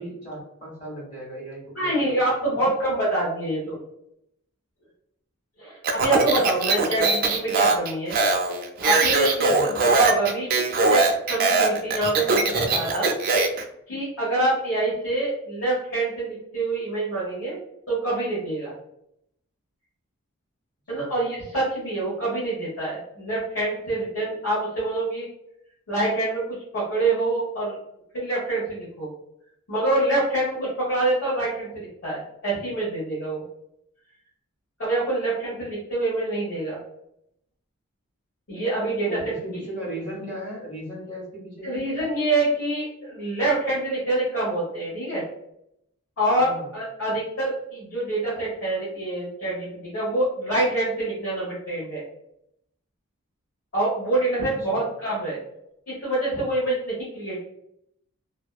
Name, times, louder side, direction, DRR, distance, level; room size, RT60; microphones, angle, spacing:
voice 1, 0.0-2.7 9.4-9.7 20.9-21.1 39.0-41.9 46.3-46.7 54.7-54.9, right 1 dB, 35° left, -6 dB, 1.4 m, -36 dB
voice 2, 1.7-3.8 5.6-8.1 8.8-10.5 10.9-11.0 11.3-13.1 13.9-17.6 17.9-18.7 20.9-25.3 25.9-26.4 26.7-27.8 28.1-29.1 29.7-33.4 34.8-36.8 38.5-39.3 41.6-45.2 46.2-52.0 53.7-55.4 55.9-57.4, right 2 dB, 60° left, -9 dB, 1.1 m, -26 dB
Speech, 5.8-13.6, right 3 dB, 45° right, 0.3 m, -21 dB
2.6 x 2.2 x 2.3 m, 0.77 s
head